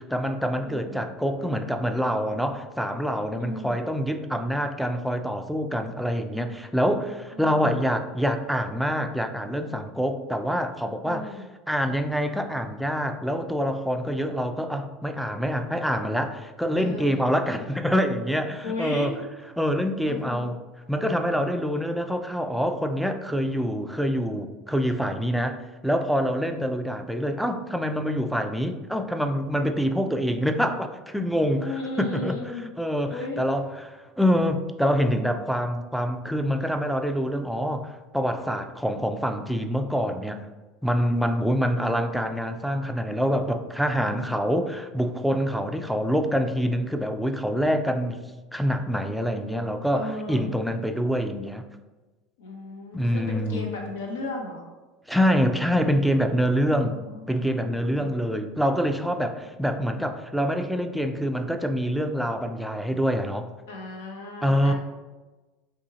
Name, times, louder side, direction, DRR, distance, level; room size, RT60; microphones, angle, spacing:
voice 1, 0.0-19.2 19.6-20.6 20.9-25.6 25.8-32.3 32.8-40.4 40.8-48.2 48.5-51.6 52.9-53.7 55.1-57.0 57.3-63.5 64.4-64.7, equal, ahead, 6 dB, 0.3 m, -26 dB
voice 2, 0.6-1.1 3.4-3.8 7.3-7.8 11.0-11.5 16.8-17.2 18.6-19.2 20.1-20.5 31.5-32.7 33.1-33.4 50.0-50.5 52.4-54.7 56.7-58.4 63.7-64.7, left 2 dB, 90° left, 0 dB, 0.7 m, -36 dB
2.7 x 2.7 x 3.9 m, 1.2 s
hypercardioid pair, 95°, 0 cm